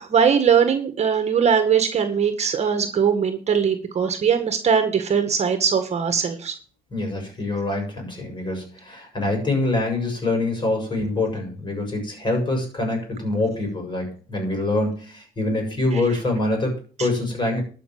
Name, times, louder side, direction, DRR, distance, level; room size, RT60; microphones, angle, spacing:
voice 1, 0.0-6.6 15.9-16.0 17.0-17.1, right 7 dB, 40° right, 8 dB, 1.8 m, -20 dB
voice 2, 6.9-17.6, left 2 dB, 25° left, 2 dB, 7.0 m, -25 dB
12.0 x 6.1 x 7.6 m, 0.40 s
cardioid pair, 110°, 17 cm